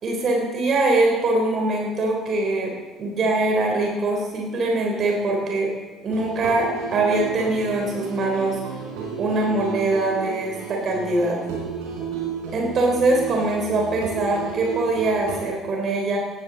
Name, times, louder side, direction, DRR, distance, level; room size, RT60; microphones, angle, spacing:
voice 1, 0.0-2.7 3.0-5.7 6.0-8.6 9.2-11.4 12.5-16.2, right 2 dB, 45° right, 0 dB, 3.7 m, -22 dB
sound 1, 6.1-15.5, right 6 dB, 65° right, 4.2 m, -32 dB
17.0 x 14.5 x 4.1 m, 1.3 s
figure-of-eight pair, 55°, 0 cm